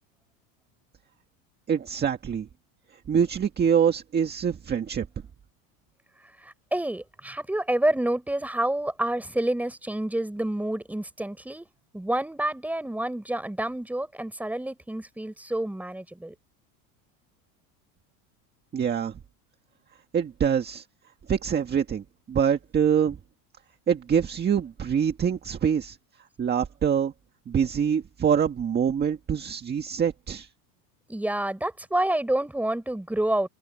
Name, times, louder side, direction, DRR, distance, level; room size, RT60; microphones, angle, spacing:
voice 1, 1.7-2.5 3.1-5.1 18.7-19.2 20.1-20.8 21.3-23.2 23.9-26.0 26.4-27.1 27.5-30.5, right 7 dB, 25° right, 1.7 m, -25 dB
voice 2, 6.4-11.7 11.9-16.3 31.1-33.5, right 1 dB, 5° right, 4.0 m, -28 dB
open air
supercardioid pair, 140°, 43 cm